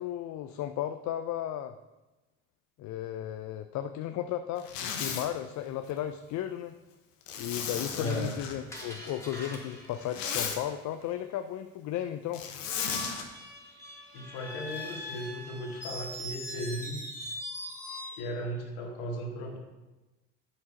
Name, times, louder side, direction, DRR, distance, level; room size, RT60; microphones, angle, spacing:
voice 1, 0.0-1.7 2.8-6.7 7.4-12.4, left 11 dB, 50° left, 9 dB, 0.5 m, -35 dB
Zipper (clothing), 4.6-5.3 7.3-8.6 9.9-10.6 12.3-13.2, left 6 dB, 90° left, 1.0 m, -35 dB
voice 2, 7.9-8.3 14.1-17.0 18.1-19.6, equal, 75° left, 0 dB, 2.0 m, -36 dB
Screech, 8.1-10.9 12.6-18.3, equal, 5° left, 2.6 m, -42 dB
7.8 x 5.8 x 4.9 m, 1.1 s
hypercardioid pair, 70°, 37 cm